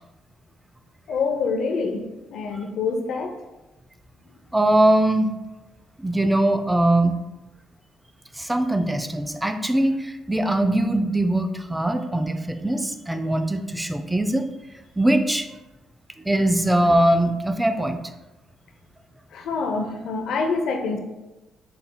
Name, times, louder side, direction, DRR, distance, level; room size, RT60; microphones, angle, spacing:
voice 1, 1.1-3.4 19.3-21.0, left 4 dB, 70° left, 4 dB, 0.6 m, -26 dB
voice 2, 4.5-5.3 6.0-7.2 8.4-14.5 15.0-15.5 16.3-18.0, right 1 dB, 10° right, 8 dB, 0.3 m, -21 dB
5.7 x 3.4 x 2.2 m, 1.1 s
cardioid pair, 125°, 0 cm